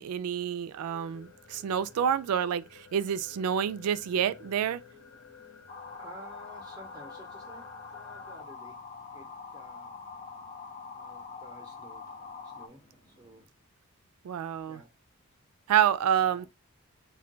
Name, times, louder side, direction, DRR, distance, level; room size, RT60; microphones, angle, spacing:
voice 1, 0.0-4.8 14.2-14.8 15.7-16.5, right 9 dB, 90° right, 0.3 m, -28 dB
sound 1, 0.8-8.4, left 6 dB, 80° left, 0.8 m, -53 dB
sound 2, 1.0-13.5, left 1 dB, 55° left, 1.0 m, -62 dB
sound 3, 5.7-12.7, left 4 dB, 35° left, 0.3 m, -44 dB
voice 2, 5.9-8.8 9.1-10.0 10.9-13.5 14.7-14.9 16.2-16.5, right 1 dB, 20° right, 0.6 m, -52 dB
2.2 x 2.2 x 3.7 m
head